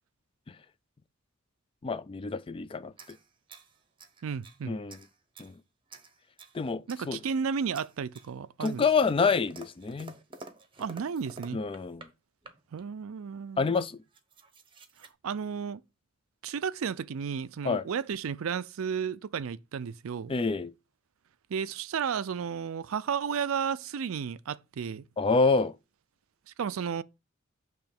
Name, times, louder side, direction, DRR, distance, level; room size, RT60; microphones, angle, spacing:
voice 1, 1.8-3.2 4.6-5.0 5.4-5.5 6.5-7.2 8.6-10.2 11.5-12.1 13.6-14.0 17.6-17.8 20.3-20.7 25.2-25.7, left 4 dB, 25° left, 0.3 m, -27 dB
sound 1, 2.9-4.6 4.9-5.5 5.9-6.6 6.9-7.4 7.7-8.3 8.6-12.1 12.4-12.9 13.6-13.7 13.9-15.1, right 3 dB, 25° right, 0.8 m, -50 dB
voice 2, 4.2-4.8 6.9-8.8 10.8-11.6 12.7-13.7 15.2-15.8 16.4-20.3 21.5-25.1 26.6-27.0, right 6 dB, 75° right, 0.4 m, -33 dB
6.8 x 3.1 x 5.8 m
head